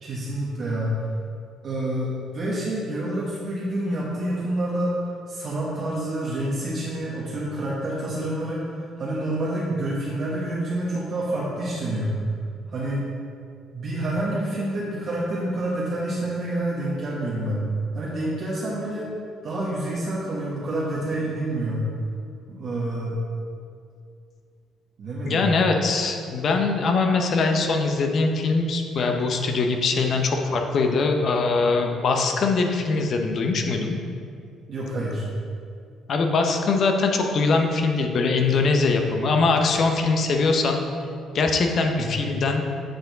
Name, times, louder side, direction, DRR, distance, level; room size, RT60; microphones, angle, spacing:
voice 1, 0.0-1.0 1.6-5.0 5.3-12.2 12.7-13.0 13.7-17.7 17.9-19.1 19.4-21.9 22.5-23.2 25.0-25.5 34.7-35.3 42.0-42.1, right 1 dB, 40° right, -6 dB, 1.1 m, -28 dB
voice 2, 25.2-34.0 36.1-40.8 41.3-42.6, left 3 dB, 45° left, 3 dB, 0.7 m, -22 dB
7.8 x 4.3 x 3.9 m, 2.4 s
cardioid pair, 145°, 0 cm